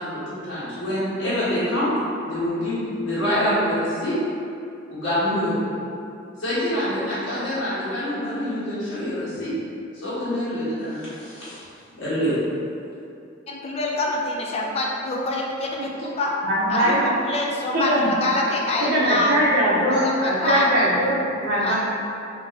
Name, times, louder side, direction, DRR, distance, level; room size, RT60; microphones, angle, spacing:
voice 1, 0.0-1.9 2.2-4.1 4.9-5.6 6.4-9.5 9.9-11.6 12.0-12.3, equal, 75° left, -13 dB, 1.4 m, -26 dB
voice 2, 13.5-16.3 16.7-19.4 19.9-20.7 21.6-21.8, left 2 dB, 30° left, -1 dB, 0.4 m, -26 dB
voice 3, 16.4-17.0 17.7-18.1 18.8-21.8, equal, 55° right, -11 dB, 0.7 m, -21 dB
2.8 x 2.8 x 3.6 m, 2.6 s
head